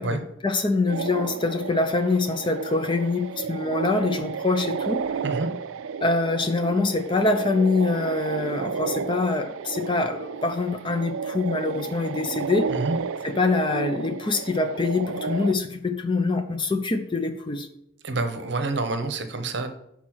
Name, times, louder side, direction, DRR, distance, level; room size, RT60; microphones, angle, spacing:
voice 1, 0.0-5.0 6.0-12.7 13.2-17.7, left 3 dB, 25° left, 8 dB, 0.5 m, -25 dB
sound 1, 0.9-15.5, right 6 dB, 75° right, 0.4 m, -32 dB
voice 2, 18.0-19.7, right 2 dB, 55° right, 7 dB, 0.8 m, -27 dB
6.1 x 4.1 x 6.1 m, 0.76 s
head